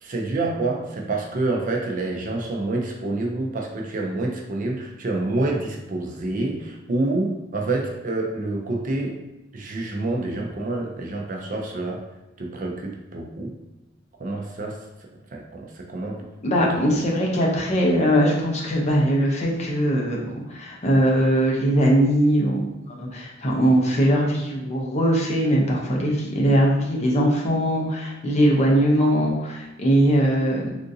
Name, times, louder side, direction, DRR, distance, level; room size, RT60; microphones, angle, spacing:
voice 1, 0.0-9.2 9.5-12.0 12.4-13.5 14.2-14.8 15.3-16.2 16.7-16.8, right 2 dB, 45° right, 0 dB, 0.4 m, -27 dB
voice 2, 16.4-30.7, equal, 35° left, -2 dB, 0.6 m, -21 dB
3.6 x 2.5 x 2.6 m, 0.98 s
head